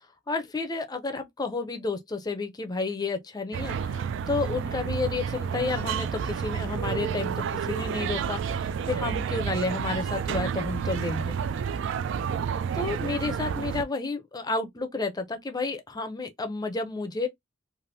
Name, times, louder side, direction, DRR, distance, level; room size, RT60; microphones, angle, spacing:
voice 1, 0.3-11.3 12.7-17.3, left 3 dB, 20° left, 0.5 m, -31 dB
sound 1, 3.5-13.8, right 7 dB, 65° right, 0.3 m, -30 dB
3.3 x 2.4 x 2.6 m
head